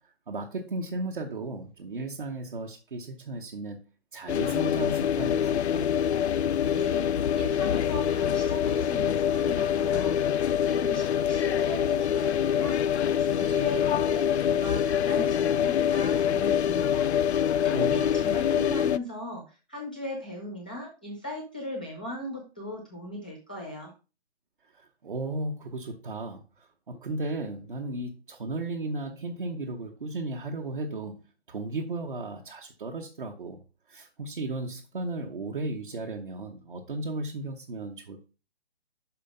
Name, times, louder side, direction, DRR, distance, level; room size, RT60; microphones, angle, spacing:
voice 1, 0.3-3.8 4.1-5.9 17.7-18.0 24.7-33.6 33.9-38.3, right 2 dB, 50° right, 1.0 m, -35 dB
sound 1, 4.3-19.0, left 9 dB, 80° left, 0.5 m, -25 dB
voice 2, 6.7-7.1 7.4-12.8 13.2-23.9, left 1 dB, 10° left, 0.6 m, -38 dB
5.7 x 4.9 x 5.3 m
hypercardioid pair, 175°, 32 cm